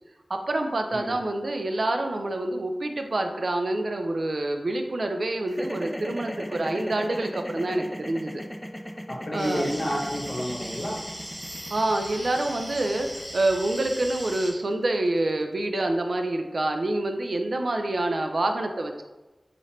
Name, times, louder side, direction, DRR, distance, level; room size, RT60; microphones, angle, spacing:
voice 1, 0.3-8.4 9.3-9.7 11.7-19.0, right 2 dB, 70° right, 5 dB, 0.3 m, -27 dB
sound 1, 5.5-15.7, equal, 10° left, 0.3 m, -38 dB
voice 2, 9.1-11.0, equal, 55° left, -2 dB, 1.0 m, -30 dB
sound 2, 9.4-14.5, equal, 45° right, 1.3 m, -39 dB
3.2 x 2.5 x 4.2 m, 1.1 s
wide cardioid pair, 55°, 0 cm